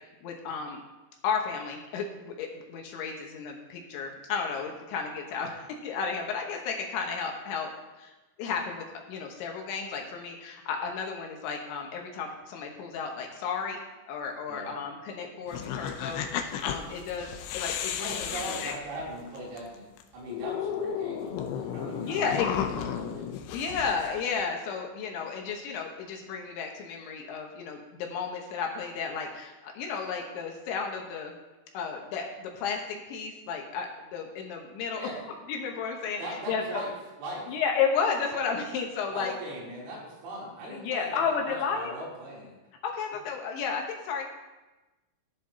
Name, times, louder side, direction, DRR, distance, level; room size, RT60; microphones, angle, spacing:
voice 1, 0.2-0.8 1.2-7.7 8.0-8.1 8.4-13.8 14.1-17.3 17.5-18.7 22.0-22.5 23.5-31.3 31.7-35.2 35.5-36.8 37.5-39.3 40.7-41.9 42.8-44.2, left 6 dB, 75° left, 1 dB, 3.2 m, -33 dB
sound 1, 15.5-19.6 20.0-20.1 20.3-24.4, left 9 dB, 90° left, 2.4 m, -34 dB
voice 2, 18.0-19.9 20.1-23.3 35.0-35.2 36.2-36.9 37.2-37.5 39.1-42.6, right 1 dB, 85° right, -6 dB, 6.0 m, -40 dB
15.5 x 11.0 x 2.8 m, 1.1 s
omnidirectional pair, 5.8 m